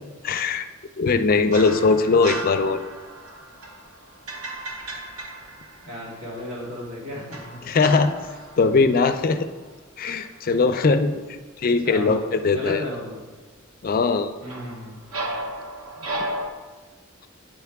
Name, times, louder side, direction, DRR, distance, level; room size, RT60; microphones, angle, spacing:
voice 1, 0.2-0.7 1.0-2.8 7.7-8.1 8.6-9.5 10.0-11.1 11.6-12.8 13.8-14.3, left 4 dB, 45° left, 9 dB, 0.4 m, -20 dB
sound 1, 1.5-6.3 7.3-9.8 10.1-10.4 14.4-16.5, right 1 dB, 85° right, 1.0 m, -35 dB
voice 2, 5.8-7.6 11.8-12.2 12.5-13.2 14.4-15.0, left 1 dB, 70° right, -6 dB, 2.3 m, -34 dB
8.9 x 4.7 x 3.4 m, 1.3 s
head